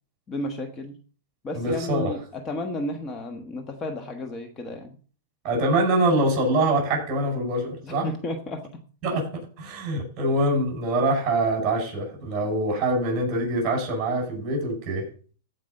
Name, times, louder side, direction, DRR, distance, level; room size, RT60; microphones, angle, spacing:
voice 1, 0.3-0.9 1.4-5.0 7.8-8.8, left 1 dB, 20° left, 5 dB, 1.2 m, -33 dB
voice 2, 1.5-2.1 5.4-8.1 9.0-15.1, right 1 dB, 35° right, 2 dB, 6.0 m, -24 dB
15.5 x 5.2 x 5.4 m, 0.39 s
supercardioid pair, 145°, 0 cm